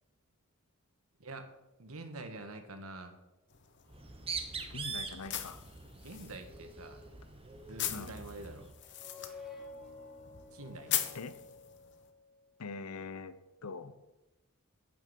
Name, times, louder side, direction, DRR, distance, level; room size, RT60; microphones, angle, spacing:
voice 1, 1.8-3.2 6.0-7.0 7.7-8.6 10.5-11.3, right 2 dB, 75° right, 6 dB, 1.6 m, -46 dB
sound 1, 3.5-12.1, left 11 dB, 50° left, 1.0 m, -42 dB
Bird, 3.9-8.7, right 4 dB, 25° right, 1.2 m, -43 dB
voice 2, 4.6-5.6 7.9-8.1 11.1-11.4 12.6-13.3 13.6-13.9, left 4 dB, 85° left, 13 dB, 0.8 m, -43 dB
sound 2, 8.8-12.3, left 4 dB, ahead, 2.1 m, -50 dB
9.6 x 8.9 x 7.0 m, 1.0 s
head